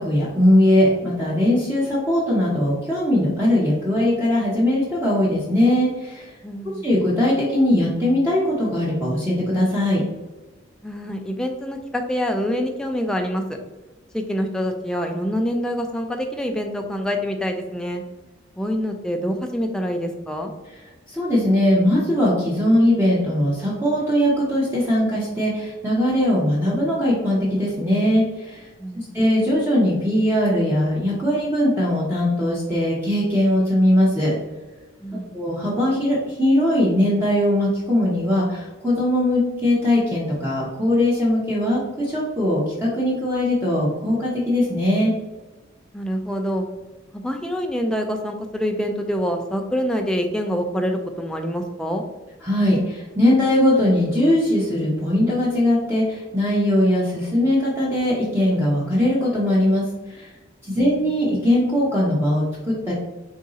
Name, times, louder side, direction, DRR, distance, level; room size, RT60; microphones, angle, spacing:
voice 1, 0.0-6.3 6.8-10.0 21.1-28.7 28.9-34.4 35.3-45.1 52.4-60.3 60.6-62.9, left 1 dB, 10° right, -7 dB, 0.8 m, -20 dB
voice 2, 6.4-6.8 10.8-13.4 14.1-18.0 18.6-20.5 28.8-29.2 35.0-35.4 45.9-46.7 47.1-52.0 60.7-61.0, equal, 5° left, 3 dB, 0.3 m, -26 dB
3.9 x 2.7 x 3.7 m, 1.1 s
head